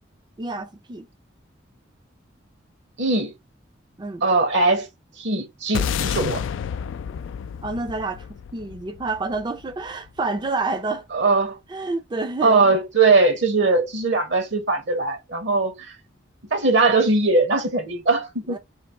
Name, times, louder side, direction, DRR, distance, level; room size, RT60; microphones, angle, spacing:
voice 1, 0.4-1.1 4.0-4.3 7.6-11.1 11.7-12.8 18.5-18.6, right 3 dB, 25° right, 0.4 m, -29 dB
voice 2, 3.0-3.3 4.2-4.9 5.2-6.4 11.1-11.6 12.4-15.9 16.5-18.6, right 3 dB, 65° right, 0.9 m, -20 dB
sound 1, 5.7-10.2, left 7 dB, 75° left, 0.3 m, -30 dB
3.3 x 2.8 x 4.2 m
head